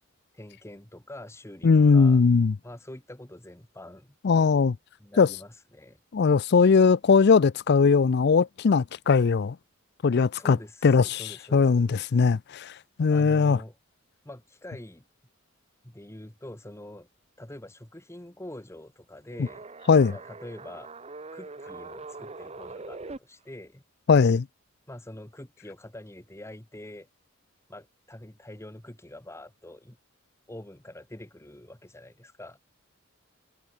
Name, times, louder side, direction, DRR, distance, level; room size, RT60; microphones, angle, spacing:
voice 1, 0.3-2.2 2.6-4.1 5.0-6.0 10.3-12.3 13.1-13.8 14.2-15.0 15.8-17.1 17.4-19.6 20.1-20.9 21.3-23.8 24.9-27.1 27.7-30.0 30.5-32.6, left 1 dB, 15° left, 1.4 m, -45 dB
voice 2, 1.6-2.5 4.2-4.8 5.2-5.3 6.1-9.6 10.0-10.6 10.8-12.7 13.0-13.6 19.4-19.5 19.9-20.1 24.1-24.5, left 5 dB, 55° left, 0.4 m, -20 dB
sound 1, 19.3-23.2, right 3 dB, 30° right, 1.0 m, -42 dB
head